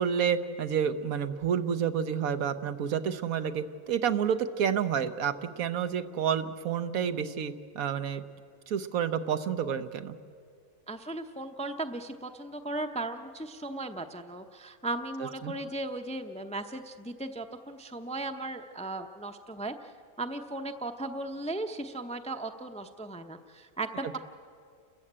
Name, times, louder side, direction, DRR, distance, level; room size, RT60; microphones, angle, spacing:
voice 1, 0.0-8.2 8.7-10.1 15.4-15.5, right 8 dB, 85° right, 10 dB, 1.3 m, -29 dB
voice 2, 10.9-19.7 20.2-24.2, right 2 dB, 5° left, 6 dB, 0.5 m, -36 dB
29.5 x 14.5 x 8.7 m, 2.2 s
omnidirectional pair, 1.4 m